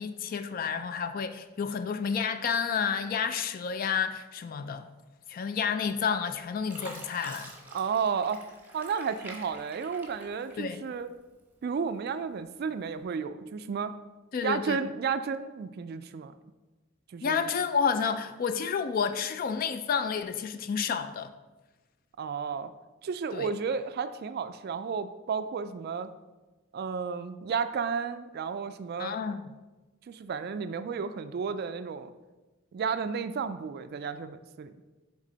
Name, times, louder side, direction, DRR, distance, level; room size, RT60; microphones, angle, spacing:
voice 1, 0.0-4.8 5.3-7.5 10.6-10.8 14.3-14.8 17.2-21.3 23.3-23.5 29.0-29.4, left 6 dB, 45° left, 0.3 m, -30 dB
Fill (with liquid), 5.9-6.3 6.7-11.1 11.5-12.3 12.9-13.0, right 1 dB, 10° right, 0.9 m, -47 dB
voice 2, 7.7-8.4 8.7-11.1 11.6-14.0 14.4-16.3 17.1-17.5 22.2-22.7 23.0-26.1 26.7-29.2 30.1-32.1 32.7-34.8, right 6 dB, 50° right, 0.3 m, -32 dB
7.4 x 3.7 x 3.9 m
head